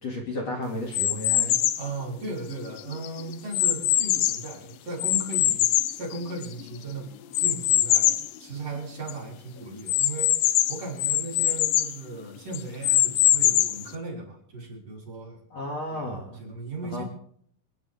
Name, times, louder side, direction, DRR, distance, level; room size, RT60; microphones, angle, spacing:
voice 1, 0.0-1.6 15.5-16.4 16.9-17.0, left 1 dB, 45° left, 0 dB, 3.1 m, -33 dB
sound 1, 0.9-1.9 2.5-4.5 5.0-6.7 7.3-8.3 8.8-8.9 9.1-9.2 9.9-12.0 12.5-13.9, left 13 dB, 80° left, 1.9 m, -23 dB
voice 2, 1.8-5.7 6.0-7.1 7.4-15.4 15.9-16.1 16.3-17.0, right 2 dB, 40° right, -3 dB, 4.8 m, -37 dB
26.5 x 10.0 x 3.6 m, 0.63 s
omnidirectional pair, 4.5 m